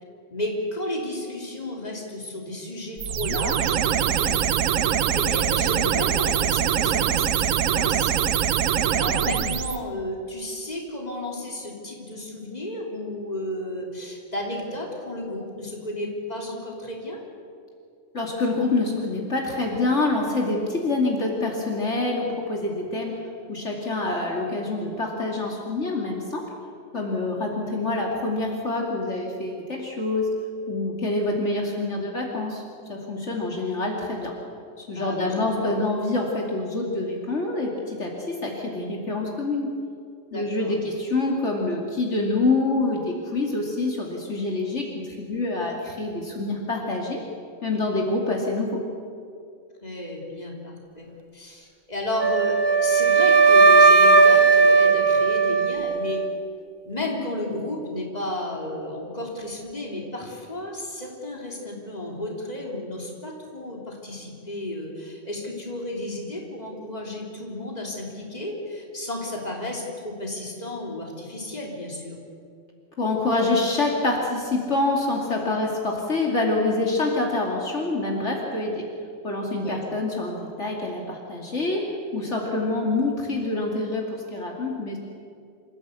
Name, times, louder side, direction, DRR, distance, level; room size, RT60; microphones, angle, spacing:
voice 1, 0.3-4.8 5.1-17.2 35.0-35.7 40.3-40.8 49.8-51.1 51.3-56.2 56.8-72.2 79.6-79.8, left 1 dB, 30° left, -1 dB, 3.7 m, -33 dB
sound 1, 3.0-9.8, right 9 dB, 90° right, 1.2 m, -23 dB
voice 2, 18.1-23.2 23.5-26.4 26.9-30.3 30.7-32.6 32.9-34.3 34.8-39.7 40.3-47.2 47.6-48.8 73.0-78.8 79.2-85.0, left 2 dB, 65° left, -1 dB, 2.9 m, -26 dB
Wind instrument woodwind instrument, 52.2-56.3, right 4 dB, 25° right, 0.6 m, -16 dB
27.5 x 15.0 x 8.3 m, 2.4 s
omnidirectional pair, 1.3 m